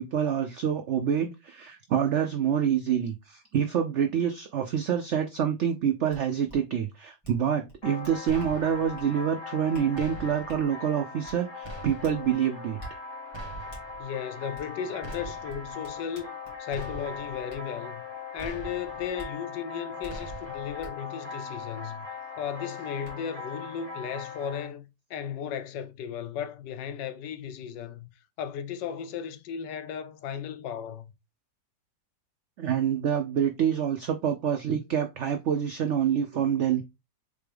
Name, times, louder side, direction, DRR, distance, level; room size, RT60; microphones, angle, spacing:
voice 1, 0.0-12.8 32.6-36.8, right 8 dB, 85° right, 0.6 m, -27 dB
sound 1, 6.1-6.2 6.5-6.6 7.2-7.4 7.7-8.5 9.0-9.1 9.7-9.9 10.5-10.6 11.2-11.4 12.0-12.2 12.8-12.9 13.7-13.8 14.5-14.7 15.1-16.9 17.5-17.6 18.4-18.5 19.2-19.3 20.0-20.1 20.8-20.9 22.4-22.5 23.0-23.1, right 1 dB, 20° left, 1.9 m, -46 dB
sound 2, 7.8-24.7, left 5 dB, 35° left, 2.9 m, -40 dB
sound 3, 8.3-9.0 9.9-10.6 11.6-12.3 13.3-14.0 15.0-15.7 16.7-17.4 18.4-19.1 20.1-20.8, right 3 dB, 35° right, 0.4 m, -43 dB
voice 2, 14.0-16.3 16.6-18.0 18.3-22.1 22.4-28.1 28.4-31.1, left 8 dB, 85° left, 1.3 m, -35 dB
4.2 x 3.4 x 3.3 m
omnidirectional pair, 1.9 m